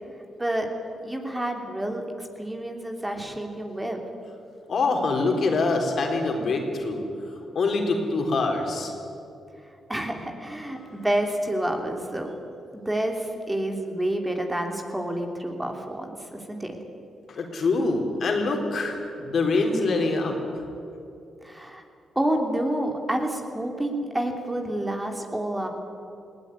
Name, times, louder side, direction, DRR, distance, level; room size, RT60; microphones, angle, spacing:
voice 1, 1.0-4.0 9.9-12.3 12.7-16.8 21.4-21.8 22.1-25.7, right 1 dB, 15° right, 3 dB, 3.2 m, -29 dB
voice 2, 4.7-8.9 17.3-20.7, left 3 dB, 60° left, 2 dB, 4.0 m, -25 dB
19.5 x 17.5 x 9.8 m, 2.7 s
cardioid pair, 65°, 0 cm